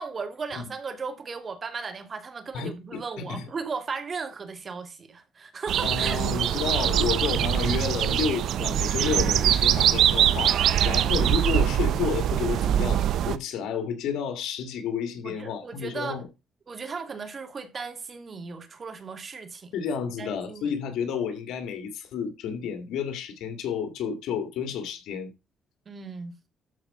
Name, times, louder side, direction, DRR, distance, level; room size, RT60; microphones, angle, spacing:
voice 1, 0.0-6.2 10.4-10.9 15.2-16.2 16.7-19.7 20.2-20.7 25.9-26.4, right 5 dB, 40° right, 2.3 m, -36 dB
voice 2, 2.5-3.5 5.8-16.2 19.7-25.3, left 7 dB, 85° left, 2.4 m, -31 dB
sound 1, 5.7-13.4, right 10 dB, 75° right, 0.7 m, -23 dB
13.0 x 4.9 x 5.5 m
cardioid pair, 90°, 0 cm